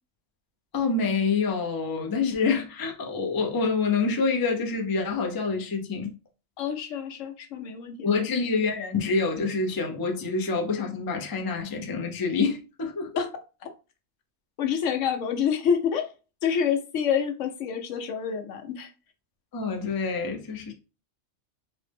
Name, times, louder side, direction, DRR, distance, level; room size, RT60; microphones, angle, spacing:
voice 1, 0.7-6.1 8.0-13.1 19.5-20.7, left 4 dB, 30° left, 0.4 m, -27 dB
voice 2, 6.6-8.1 13.2-13.3 13.6-13.7 14.6-16.1 16.4-18.9, left 7 dB, 85° left, 1.0 m, -27 dB
4.1 x 2.0 x 3.3 m
omnidirectional pair, 1.3 m